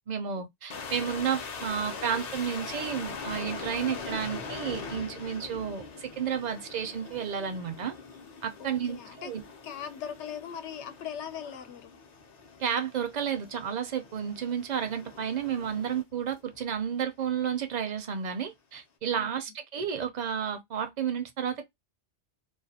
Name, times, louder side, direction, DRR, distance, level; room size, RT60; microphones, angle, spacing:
voice 1, 0.1-7.9 8.4-9.4 12.6-21.7, right 8 dB, 55° right, 0.5 m, -32 dB
sound 1, 0.7-16.9 17.2-17.6 18.1-18.2, left 5 dB, 50° left, 0.5 m, -42 dB
voice 2, 8.6-9.3 9.6-12.0 19.2-19.3, left 8 dB, 90° left, 0.9 m, -40 dB
2.4 x 2.2 x 2.6 m
omnidirectional pair, 1.1 m